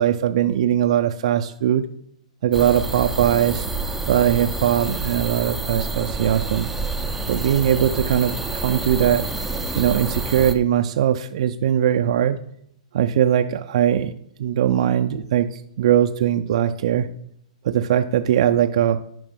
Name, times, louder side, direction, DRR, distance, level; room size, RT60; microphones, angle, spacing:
voice 1, 0.0-1.9 2.4-3.7 4.1-6.7 7.3-9.3 9.7-12.4 12.9-14.1 14.4-17.1 17.6-19.0, right 10 dB, 60° right, 7 dB, 0.4 m, -20 dB
sound 1, 2.5-10.5, right 3 dB, 5° right, 0.5 m, -28 dB
11.0 x 5.0 x 3.6 m, 0.71 s
hypercardioid pair, 145°, 4 cm